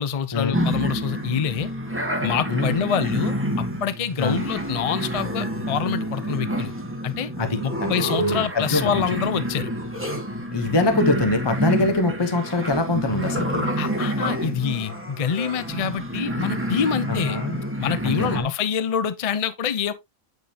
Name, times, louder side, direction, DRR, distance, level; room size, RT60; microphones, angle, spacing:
voice 1, 0.0-1.7 2.2-6.7 7.0-7.3 7.6-9.7 13.8-17.4 17.8-19.9, left 7 dB, 40° left, 0.6 m, -26 dB
sound 1, 0.5-18.4, equal, 10° right, 1.2 m, -28 dB
voice 2, 7.4-9.0 10.5-13.7 17.1-17.6 18.0-18.5, left 2 dB, 20° left, 0.9 m, -24 dB
9.3 x 5.2 x 2.8 m
omnidirectional pair, 1.4 m